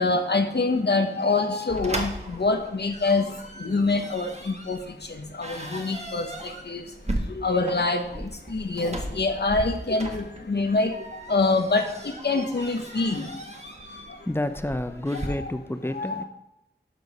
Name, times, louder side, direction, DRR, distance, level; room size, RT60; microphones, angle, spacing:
voice 1, 0.0-3.2 3.6-4.8 5.3-6.8 7.3-8.0 8.5-10.9 11.3-13.4 15.4-15.5 15.9-16.2, left 3 dB, 65° left, 5 dB, 0.9 m, -25 dB
sound 1, 1.7-15.3, right 1 dB, 40° right, 1.5 m, -37 dB
voice 2, 13.9-16.2, left 1 dB, 10° left, 10 dB, 0.7 m, -30 dB
12.0 x 4.7 x 5.4 m, 0.84 s
wide cardioid pair, 60°, 18 cm